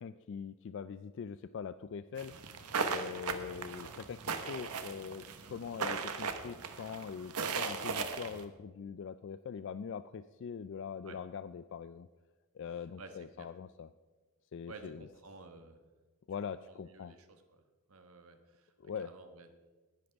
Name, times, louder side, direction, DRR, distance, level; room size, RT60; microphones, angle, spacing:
voice 1, 0.0-2.3 2.9-4.2 4.5-12.1 12.5-13.9 14.5-15.1 16.3-17.1 18.8-19.1, left 6 dB, 55° left, 13 dB, 0.3 m, -43 dB
sound 1, 2.2-8.4, right 5 dB, 90° right, 1.2 m, -38 dB
voice 2, 13.0-13.5 14.7-15.8 16.7-17.6 17.9-18.7 19.0-19.5, right 3 dB, 70° right, 7 dB, 1.3 m, -53 dB
19.0 x 10.5 x 3.5 m, 1.3 s
head